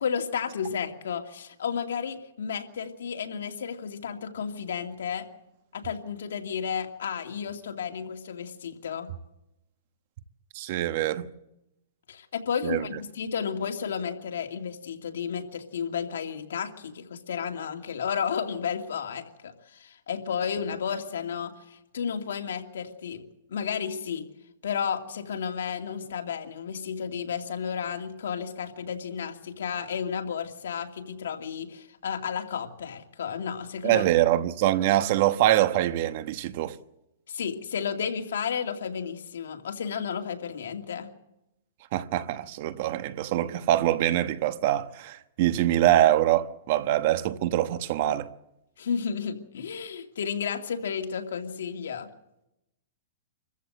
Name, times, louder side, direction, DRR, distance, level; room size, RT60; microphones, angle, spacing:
voice 1, 0.0-5.3 5.7-9.1 12.1-23.2 23.5-24.3 24.6-34.1 37.3-41.1 48.8-52.1, left 7 dB, 85° left, 2.5 m, -32 dB
voice 2, 10.5-11.3 12.6-12.8 33.8-36.8 41.9-48.3, right 13 dB, 45° right, 1.1 m, -24 dB
26.5 x 14.5 x 7.8 m
hypercardioid pair, 165°, 0 cm